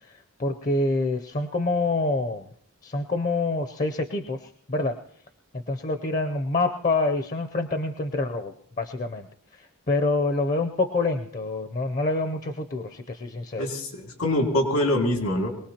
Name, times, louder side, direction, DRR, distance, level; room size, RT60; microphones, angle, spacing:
voice 1, 0.4-2.5 2.8-5.0 5.7-9.3 9.6-13.7, left 2 dB, 35° left, 7 dB, 0.6 m, -26 dB
voice 2, 13.6-15.5, left 1 dB, 85° left, 2 dB, 2.5 m, -24 dB
23.0 x 18.5 x 2.9 m, 0.64 s
head